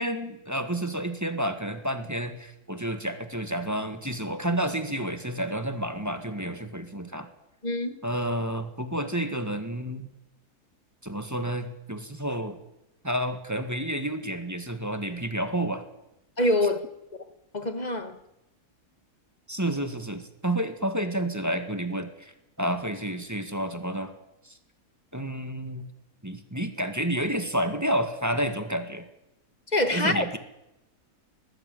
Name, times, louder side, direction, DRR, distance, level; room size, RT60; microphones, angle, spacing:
voice 1, 0.0-7.3 8.0-10.1 11.0-12.6 13.0-15.8 19.5-22.3 22.6-24.1 24.4-24.6 25.1-25.8 26.2-29.1 29.9-30.4, right 1 dB, 10° right, 1.7 m, -30 dB
voice 2, 7.6-7.9 16.4-16.9 17.5-18.1 29.7-30.2, left 1 dB, 30° left, 1.5 m, -25 dB
20.0 x 15.0 x 9.3 m
omnidirectional pair, 1.6 m